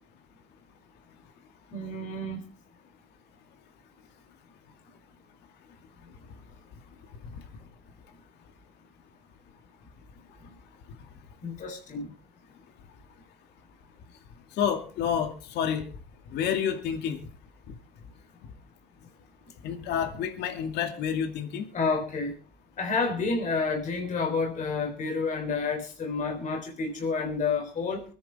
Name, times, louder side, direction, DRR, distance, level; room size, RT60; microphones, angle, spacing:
voice 1, 1.7-2.4 11.4-12.1 21.7-22.3 22.8-28.0, left 4 dB, 50° left, 2 dB, 3.8 m, -29 dB
voice 2, 14.5-15.9 16.3-17.2 17.7-17.8 19.6-21.7, left 8 dB, 80° left, 6 dB, 2.3 m, -29 dB
24.5 x 10.0 x 3.5 m, 0.36 s
cardioid pair, 110°, 17 cm